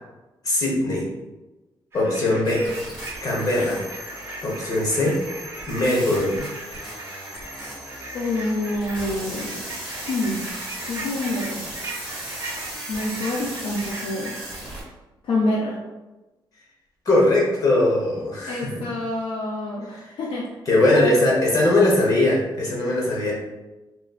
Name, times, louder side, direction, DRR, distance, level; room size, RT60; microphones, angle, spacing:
voice 1, 0.4-1.1 1.9-2.7 3.2-3.8 4.4-5.2 5.7-6.4 17.0-18.7 20.7-23.3, left 1 dB, 45° left, -4 dB, 1.1 m, -20 dB
sound 1, 1.9-14.6, right 2 dB, 30° right, 0.8 m, -38 dB
sound 2, 2.4-14.8, right 1 dB, 5° left, 1.2 m, -37 dB
voice 2, 8.1-9.7 10.1-10.4 10.9-11.6 12.9-14.4 15.2-15.8 18.4-20.5 20.9-21.1, left 1 dB, 75° left, -3 dB, 0.6 m, -27 dB
3.8 x 3.0 x 2.4 m, 1.1 s
wide cardioid pair, 170°, 9 cm